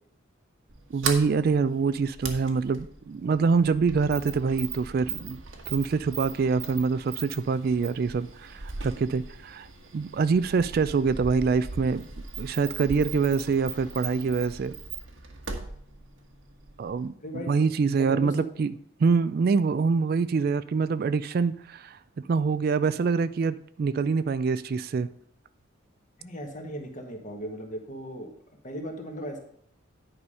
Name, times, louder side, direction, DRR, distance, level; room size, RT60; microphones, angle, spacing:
Sliding door, 0.7-17.1, right 5 dB, 75° right, 1.2 m, -39 dB
voice 1, 0.9-5.4 5.7-9.7 9.9-12.0 12.4-14.7 16.8-18.7 19.0-22.0 22.3-25.1, right 5 dB, 50° right, 14 dB, 0.3 m, -25 dB
voice 2, 18.0-18.4 26.2-28.3 28.6-29.4, equal, 40° left, 3 dB, 1.5 m, -37 dB
9.6 x 5.0 x 5.5 m, 0.66 s
head